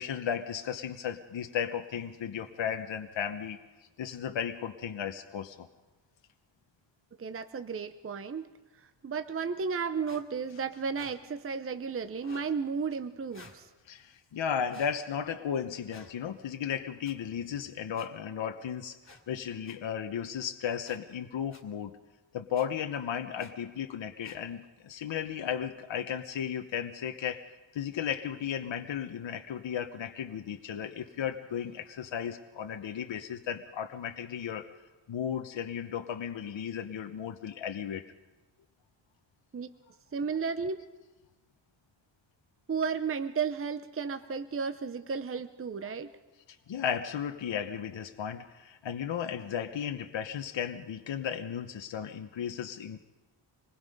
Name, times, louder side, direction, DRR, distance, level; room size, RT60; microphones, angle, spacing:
voice 1, 0.0-3.6 4.0-5.7 13.9-19.0 19.3-22.0 22.3-27.4 27.7-34.7 35.1-38.0 46.7-53.0, left 8 dB, 70° left, 6 dB, 1.0 m, -35 dB
voice 2, 7.2-8.5 8.8-13.7 39.5-39.7 40.1-40.8 42.7-46.1, right 5 dB, 30° right, 9 dB, 0.7 m, -33 dB
sound 1, 10.0-10.2 10.9-11.1 12.2-12.5 13.3-13.6 14.7-14.9 15.9-16.1 17.0-17.1 17.9-18.1 19.0-19.2 19.6-19.8 20.8-21.0 21.5-21.6 22.5-22.7 23.4-23.5 24.2-24.4, left 2 dB, 25° left, 2.5 m, -52 dB
26.0 x 20.0 x 5.3 m, 1.2 s
wide cardioid pair, 125°, 47 cm